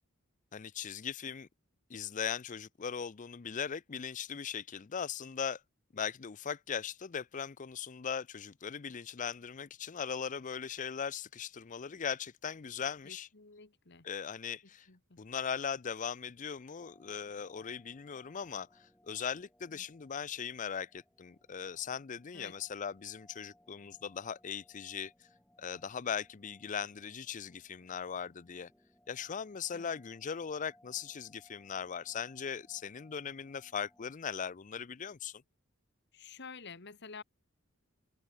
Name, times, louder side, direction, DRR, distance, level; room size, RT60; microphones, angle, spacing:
voice 1, 0.5-1.5 1.9-5.6 5.9-13.3 14.0-14.9 15.2-25.1 25.6-28.7 29.1-35.4, left 7 dB, 35° left, 0.5 m, -39 dB
voice 2, 13.0-14.1 14.9-15.2 19.7-19.8 22.3-22.5 29.7-29.9 36.1-37.2, left 5 dB, 55° left, 1.8 m, -50 dB
sound 1, 16.8-34.1, left 1 dB, 5° left, 2.8 m, -67 dB
head